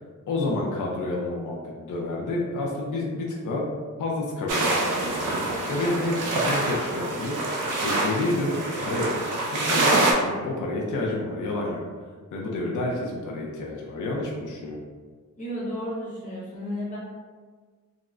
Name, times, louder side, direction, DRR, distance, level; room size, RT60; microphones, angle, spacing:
voice 1, 0.3-3.7 4.0-5.3 5.7-7.4 7.8-11.8 12.3-14.8, left 2 dB, 90° left, -2 dB, 0.5 m, -29 dB
sound 1, 4.5-10.1, right 2 dB, 85° right, 0.5 m, -25 dB
voice 2, 15.4-17.0, equal, 25° left, -8 dB, 0.9 m, -32 dB
3.6 x 2.0 x 2.3 m, 1.5 s
wide cardioid pair, 160°, 30 cm